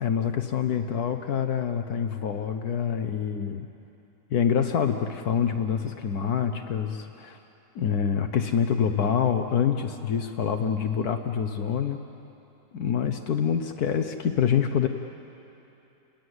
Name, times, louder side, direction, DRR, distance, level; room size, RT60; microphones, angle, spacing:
voice 1, 0.0-3.7 4.3-7.4 7.7-12.0 12.7-14.9, left 7 dB, 70° left, 7 dB, 1.4 m, -26 dB
29.0 x 21.0 x 8.0 m, 2.9 s
omnidirectional pair, 1.7 m